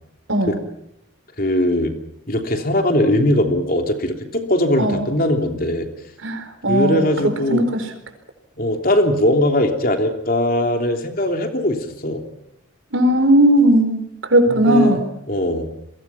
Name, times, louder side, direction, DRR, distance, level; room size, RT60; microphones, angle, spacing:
voice 1, 1.4-1.9 2.3-5.9 6.7-7.6 8.6-12.2 14.5-15.0 15.3-15.7, left 1 dB, 45° left, 4 dB, 3.2 m, -20 dB
voice 2, 6.2-7.1 7.5-7.9 12.9-15.0, right 1 dB, 80° right, 6 dB, 4.6 m, -17 dB
29.5 x 22.5 x 6.0 m, 0.80 s
head